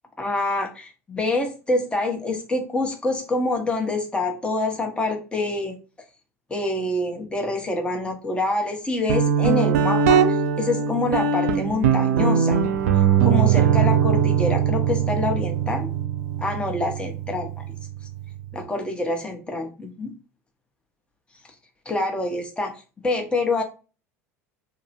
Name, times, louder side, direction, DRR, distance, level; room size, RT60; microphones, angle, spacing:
voice 1, 0.2-5.8 6.5-12.6 13.2-15.9 16.4-17.6 18.5-20.1 21.9-23.6, left 2 dB, 10° left, 3 dB, 0.8 m, -26 dB
Guitar, 9.1-18.6, right 7 dB, 70° right, 0.4 m, -21 dB
2.8 x 2.0 x 2.8 m, 0.32 s
hypercardioid pair, 75°, 8 cm